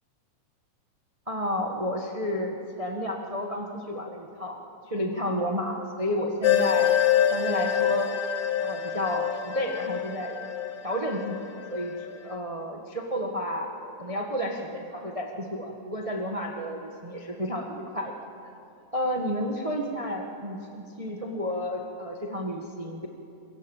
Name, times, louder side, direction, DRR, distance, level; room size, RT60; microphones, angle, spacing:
voice 1, 1.3-4.6 4.9-6.9 7.3-8.1 8.6-10.4 10.8-11.4 11.7-11.9 12.2-13.7 14.0-18.1 18.9-23.1, equal, 20° right, 1 dB, 0.8 m, -31 dB
Game Background Dark Music, 6.4-12.1, left 9 dB, 85° left, 0.9 m, -26 dB
27.0 x 22.5 x 7.3 m, 2.7 s
omnidirectional pair, 3.6 m